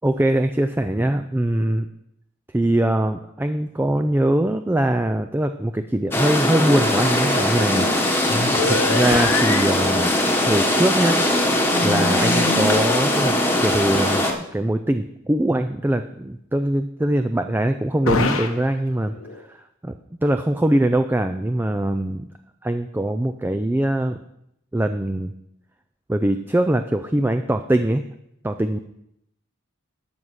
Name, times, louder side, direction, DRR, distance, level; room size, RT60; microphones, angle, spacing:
voice 1, 0.0-1.9 2.5-7.9 8.7-10.2 10.5-11.2 11.8-19.9 20.2-22.3 22.6-24.2 24.7-25.3 26.1-28.2 28.4-28.8, right 1 dB, 10° right, 8 dB, 0.3 m, -22 dB
sound 1, 6.1-14.3, left 1 dB, 10° left, 1.2 m, -20 dB
sound 2, 7.7-7.9 8.2-9.8 11.7-13.0 18.1-18.6 19.0-19.4, left 3 dB, 90° left, 1.1 m, -25 dB
13.0 x 5.6 x 6.3 m, 0.80 s
head